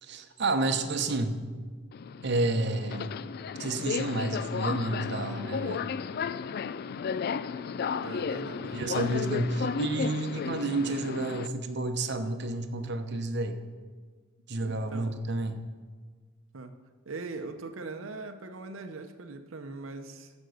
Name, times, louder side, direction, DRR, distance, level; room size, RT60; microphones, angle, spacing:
voice 1, 0.0-1.4 2.2-3.2 3.6-5.9 8.6-13.6 14.5-15.6, right 2 dB, 60° right, 7 dB, 0.9 m, -30 dB
Subway metro underground, 1.9-11.5, left 6 dB, 50° left, 0.3 m, -33 dB
voice 2, 7.9-8.7 14.6-15.1 16.5-16.7 17.1-20.3, right 3 dB, 85° right, 6 dB, 0.7 m, -41 dB
14.5 x 5.3 x 6.5 m, 1.5 s
head